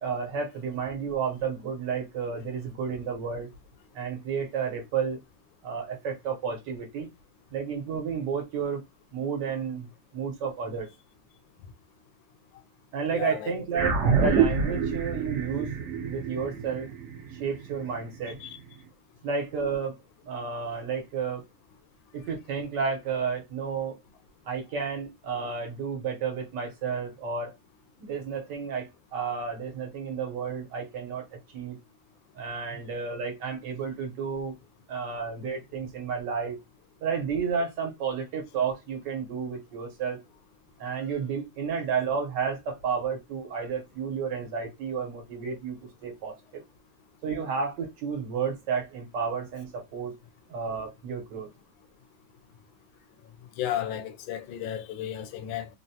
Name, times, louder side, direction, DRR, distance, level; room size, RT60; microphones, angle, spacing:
voice 1, 0.0-3.5 3.9-5.2 5.6-7.1 7.5-8.8 9.1-10.9 12.9-15.7 16.1-16.9 17.3-18.4 19.2-20.0 20.2-21.4 22.1-24.0 24.5-27.5 28.0-31.2 31.5-31.8 32.3-34.5 34.9-36.6 37.0-40.2 40.8-45.8 46.0-46.6 47.2-50.1 50.5-51.5, right 6 dB, 70° right, 1.4 m, -31 dB
voice 2, 13.1-13.5 18.4-18.5 53.6-55.7, left 11 dB, 80° left, 1.3 m, -33 dB
sound 1, 13.7-18.4, right 6 dB, 55° right, 0.9 m, -27 dB
3.8 x 2.0 x 2.7 m
omnidirectional pair, 2.1 m